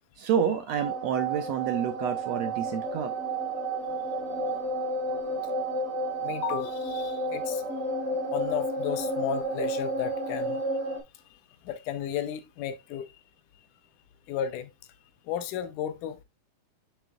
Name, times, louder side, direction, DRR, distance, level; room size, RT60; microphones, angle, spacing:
voice 1, 0.2-3.1, right 8 dB, 75° right, 1.6 m, -28 dB
sound 1, 0.8-11.0, right 2 dB, 45° right, 3.1 m, -31 dB
voice 2, 6.2-7.7 8.3-10.6 11.6-13.1 14.3-14.7 15.3-16.2, left 10 dB, 80° left, 2.4 m, -33 dB
7.4 x 7.0 x 2.3 m
omnidirectional pair, 3.7 m